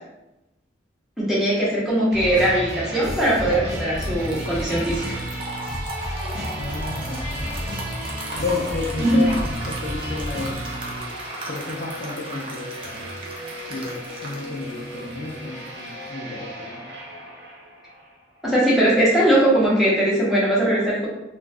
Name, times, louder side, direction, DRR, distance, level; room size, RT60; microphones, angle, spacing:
voice 1, 1.2-5.2 9.0-9.3 18.4-21.1, right 1 dB, ahead, -7 dB, 0.8 m, -20 dB
sound 1, 2.1-18.1 18.4-18.5, equal, 75° right, 0.9 m, -33 dB
sound 2, 3.2-16.1, right 1 dB, 30° right, 0.5 m, -37 dB
voice 2, 6.6-7.9 8.4-10.6 11.5-13.1 13.7-16.9, left 3 dB, 45° left, -3 dB, 0.4 m, -32 dB
2.5 x 2.3 x 3.2 m, 0.94 s
head